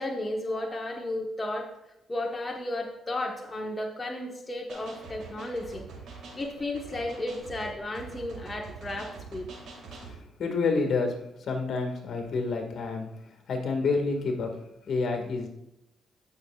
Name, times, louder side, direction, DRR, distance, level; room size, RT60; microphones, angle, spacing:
voice 1, 0.0-1.7 2.1-5.8 6.4-9.5, left 1 dB, 20° left, 0 dB, 1.2 m, -33 dB
sound 1, 4.7-10.2, right 4 dB, 75° right, 3.0 m, -45 dB
voice 2, 10.0-13.1 13.5-14.6 14.9-15.5, left 4 dB, 60° left, 3 dB, 1.8 m, -29 dB
16.5 x 6.2 x 2.4 m, 0.85 s
cardioid pair, 90°, 0 cm